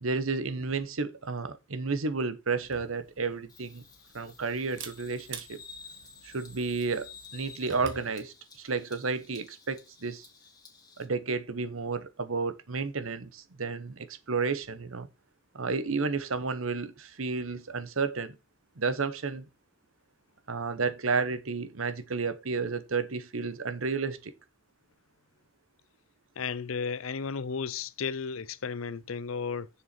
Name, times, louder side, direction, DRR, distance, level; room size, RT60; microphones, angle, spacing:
voice 1, 0.0-3.8 4.1-5.6 6.2-10.2 11.0-15.1 15.5-18.4 18.8-19.4 20.5-24.3, right 4 dB, 80° right, 1.1 m, -32 dB
Camera, 2.6-8.1, right 5 dB, 65° right, 1.7 m, -48 dB
Bird vocalization bird call bird song, 3.5-11.0, left 4 dB, 20° left, 1.8 m, -52 dB
voice 2, 26.4-29.7, left 5 dB, 80° left, 0.6 m, -34 dB
7.0 x 6.2 x 4.4 m
head